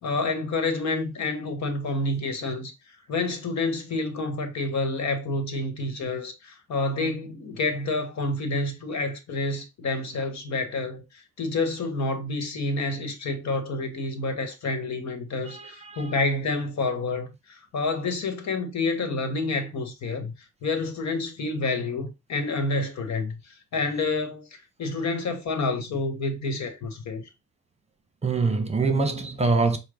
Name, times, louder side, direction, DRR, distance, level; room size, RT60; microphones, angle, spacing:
voice 1, 0.0-2.7 3.1-20.3 20.6-27.3, left 3 dB, 65° left, 1.3 m, -28 dB
voice 2, 15.5-16.1 28.2-29.8, right 3 dB, 20° right, 1.1 m, -24 dB
6.5 x 2.3 x 3.6 m
cardioid pair, 90°, 30 cm